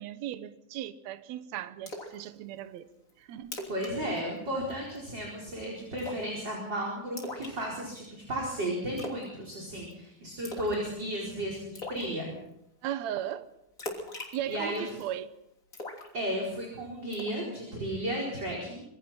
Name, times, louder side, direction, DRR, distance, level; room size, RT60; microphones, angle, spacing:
voice 1, 0.0-2.9 3.2-3.6 12.8-13.5 14.3-15.3, right 11 dB, 70° right, 1.8 m, -37 dB
Splash splatter, 1.9-2.2 2.6-2.7 3.1-3.2 3.4-3.9 4.2-4.4 4.7-5.1 6.0-6.3 7.2-8.0 9.0-9.3 9.5-9.9 10.4-10.8 11.1-11.2 11.7-12.0 13.8-15.1 15.7-16.6 17.1-17.4, left 2 dB, 25° left, 3.2 m, -40 dB
voice 2, 3.7-12.3 14.5-14.8 16.1-18.8, right 1 dB, 30° right, 4.9 m, -34 dB
25.5 x 23.5 x 4.4 m
omnidirectional pair, 4.3 m